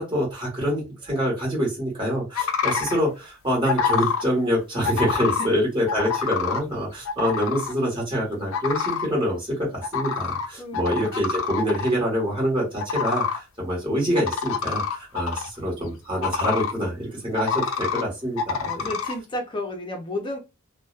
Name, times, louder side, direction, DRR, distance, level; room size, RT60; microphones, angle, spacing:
voice 1, 0.0-18.9, equal, 25° right, -4 dB, 1.3 m, -26 dB
sound 1, 2.3-3.0 3.6-4.2 4.8-5.5 5.9-6.6 7.0-7.7 8.5-9.1 9.8-10.5 10.7-11.9 12.8-13.4 14.2-15.5 16.2-16.7 17.4-18.0 18.4-19.1, left 6 dB, 85° left, 0.4 m, -26 dB
voice 2, 10.6-11.1 18.6-20.4, left 1 dB, 25° left, 2 dB, 0.5 m, -32 dB
2.6 x 2.1 x 2.3 m, 0.26 s
head